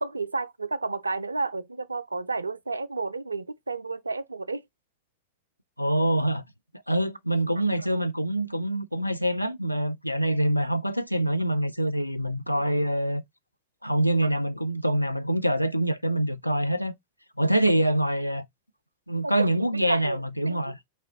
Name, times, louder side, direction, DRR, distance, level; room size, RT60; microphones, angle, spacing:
voice 1, 0.0-4.6 12.5-12.6 14.2-14.3 17.4-17.5 19.2-20.6, right 3 dB, 80° right, 0.3 m, -32 dB
voice 2, 5.8-6.4 6.9-13.2 13.8-16.9 17.4-18.5 19.1-20.8, right 1 dB, 90° left, 0.4 m, -25 dB
4.6 x 2.9 x 2.7 m
figure-of-eight pair, 90°, 0 cm